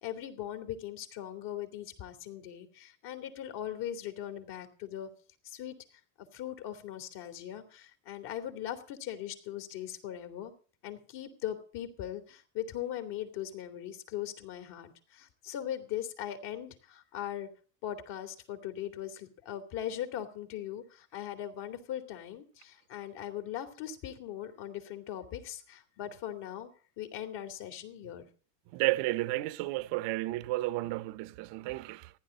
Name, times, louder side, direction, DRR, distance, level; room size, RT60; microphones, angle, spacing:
voice 1, 0.0-5.1 5.4-5.8 6.2-10.5 10.8-17.5 17.8-26.7 27.0-28.3, left 11 dB, 55° left, 2.7 m, -40 dB
voice 2, 28.7-32.1, right 18 dB, 60° right, 0.9 m, -32 dB
15.0 x 10.0 x 6.3 m
supercardioid pair, 110°, 49 cm